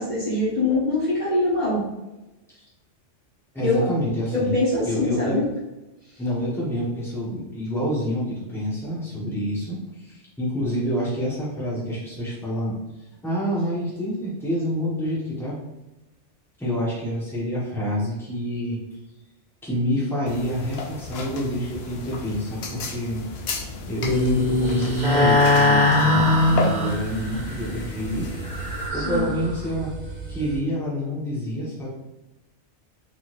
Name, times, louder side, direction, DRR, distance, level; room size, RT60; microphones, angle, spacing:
voice 1, 0.0-1.8 3.6-3.8 4.3-5.4 28.9-29.3, left 2 dB, 40° left, -12 dB, 1.6 m, -23 dB
voice 2, 3.5-4.6 4.8-5.4 6.2-12.8 13.2-15.6 16.6-18.8 19.6-23.2 23.6-28.3 28.9-29.9 30.3-31.9, equal, ahead, -7 dB, 1.4 m, -27 dB
sound 1, 20.3-28.9, left 3 dB, 60° left, 0.9 m, -34 dB
sound 2, 24.0-30.6, left 2 dB, 40° right, 1.7 m, -22 dB
4.3 x 4.2 x 2.6 m, 1.0 s
omnidirectional pair, 1.2 m